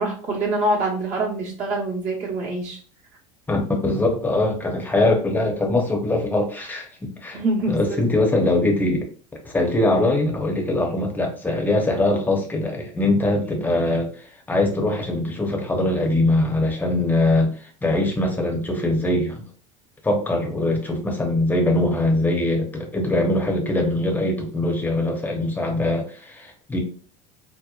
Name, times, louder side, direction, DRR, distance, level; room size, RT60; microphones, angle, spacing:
voice 1, 0.0-2.8 7.3-8.0, right 2 dB, 45° right, -3 dB, 1.1 m, -25 dB
voice 2, 3.5-7.4 7.7-9.0 9.4-19.5 20.0-26.8, left 2 dB, 10° left, 1 dB, 0.8 m, -22 dB
2.9 x 2.0 x 2.4 m, 0.41 s
supercardioid pair, 100°, 17 cm